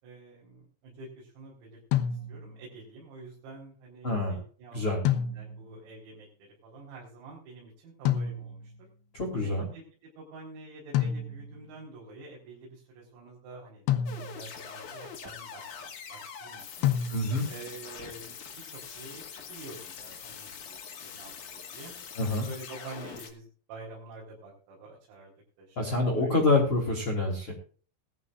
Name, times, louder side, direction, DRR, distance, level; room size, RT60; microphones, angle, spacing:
voice 1, 0.0-8.9 9.4-9.8 10.2-14.0 14.4-15.6 16.1-16.9 17.5-22.0 22.3-26.6, right 3 dB, 85° right, -3 dB, 6.9 m, -48 dB
sound 1, 1.9-2.7 5.0-5.8 8.1-8.8 10.9-11.7 13.9-14.6 16.8-17.6, left 9 dB, 75° left, 2.7 m, -29 dB
voice 2, 4.0-4.4 4.7-5.0 9.1-9.6 17.1-17.5 22.2-22.5 25.8-27.5, left 2 dB, 30° left, 1 dB, 3.1 m, -26 dB
sound 2, 14.1-23.3, left 7 dB, 50° left, 2.5 m, -44 dB
20.0 x 12.5 x 2.5 m, 0.41 s
omnidirectional pair, 6.0 m